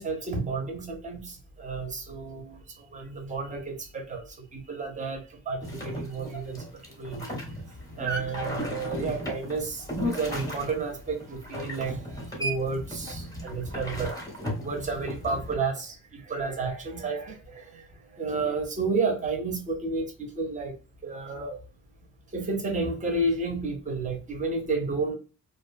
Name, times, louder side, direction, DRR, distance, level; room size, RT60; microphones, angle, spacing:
voice 1, 0.0-4.2 4.5-6.6 7.0-7.3 8.0-14.1 14.6-17.9 18.1-20.7 21.0-21.6 22.3-25.1, right 3 dB, 20° right, 3 dB, 0.6 m, -31 dB
sound 1, 5.6-15.5, equal, 10° left, 0.7 m, -35 dB
2.5 x 2.2 x 2.5 m, 0.35 s
cardioid pair, 160°, 38 cm